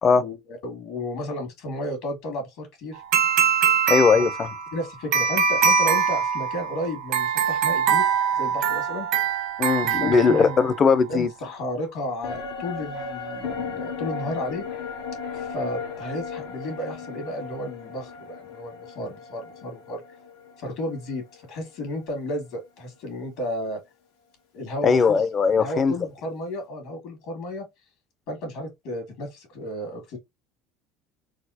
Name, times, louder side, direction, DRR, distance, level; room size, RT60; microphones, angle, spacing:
voice 1, 0.2-3.0 4.2-4.3 4.7-9.1 9.8-10.6 11.1-14.6 15.3-20.0 20.6-23.8 24.5-25.2 25.5-27.7 28.3-30.2, left 1 dB, 65° left, 1.9 m, -33 dB
sound 1, 3.1-10.8, right 7 dB, 70° right, 1.0 m, -23 dB
voice 2, 3.9-4.5 9.6-11.3 24.8-25.9, left 5 dB, 35° left, 0.6 m, -19 dB
sound 2, 12.2-21.7 22.1-22.2, left 5 dB, 85° left, 1.0 m, -36 dB
4.1 x 2.0 x 2.7 m
supercardioid pair, 85°, 0 cm